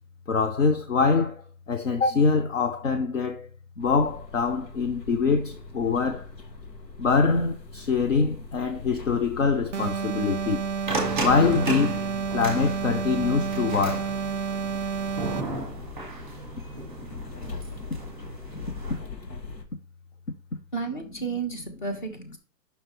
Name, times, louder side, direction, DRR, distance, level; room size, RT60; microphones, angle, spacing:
voice 1, 0.3-3.5 3.8-6.3 7.0-10.7 11.2-12.0 12.3-14.2, left 4 dB, 50° left, 0.8 m, -24 dB
sound 1, 3.8-19.6, left 4 dB, 85° left, 2.0 m, -42 dB
sound 2, 9.7-15.6, right 7 dB, 50° right, 0.5 m, -30 dB
sound 3, 10.9-19.0, right 2 dB, ahead, 1.5 m, -34 dB
voice 2, 20.7-22.4, right 4 dB, 30° left, 1.4 m, -32 dB
11.0 x 5.8 x 3.1 m
hypercardioid pair, 180°, 49 cm